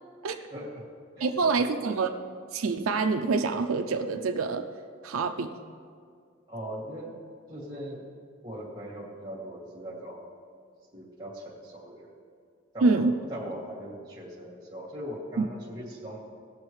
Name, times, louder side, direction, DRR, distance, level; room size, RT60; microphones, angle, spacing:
voice 1, 0.5-0.8 1.2-1.3 1.5-1.7 6.5-7.1 7.5-8.1 8.4-10.2 10.9-12.2 12.7-16.2, equal, 20° right, -6 dB, 2.3 m, -40 dB
voice 2, 1.2-2.1 2.5-4.7 5.0-5.5 12.8-13.1 15.4-15.5, right 4 dB, 85° right, 6 dB, 0.5 m, -26 dB
17.5 x 7.0 x 3.2 m, 2.1 s
head